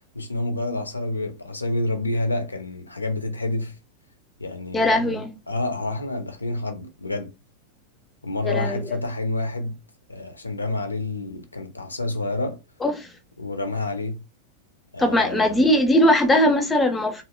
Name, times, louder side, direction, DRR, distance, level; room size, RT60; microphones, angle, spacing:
voice 1, 0.1-3.7 4.4-7.3 8.2-9.8 10.1-12.6 13.4-14.2 14.9-15.8, left 2 dB, 80° left, 0.5 m, -28 dB
voice 2, 4.7-5.3 8.4-8.8 12.8-13.1 15.0-17.2, left 1 dB, 10° left, 0.6 m, -20 dB
2.7 x 2.0 x 2.2 m
figure-of-eight pair, 90°, 0 cm